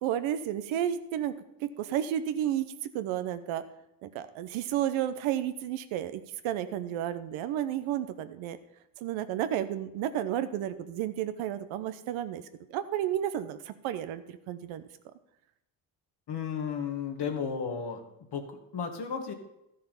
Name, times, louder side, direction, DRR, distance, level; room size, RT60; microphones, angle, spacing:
voice 1, 0.0-1.3 1.6-2.7 2.9-3.6 4.0-8.6 9.0-12.4 12.7-14.8, right 11 dB, 80° right, 11 dB, 0.9 m, -32 dB
voice 2, 16.3-18.0 18.3-19.3, left 6 dB, 55° left, 4 dB, 2.0 m, -34 dB
13.0 x 6.7 x 5.4 m, 0.86 s
supercardioid pair, 55°, 47 cm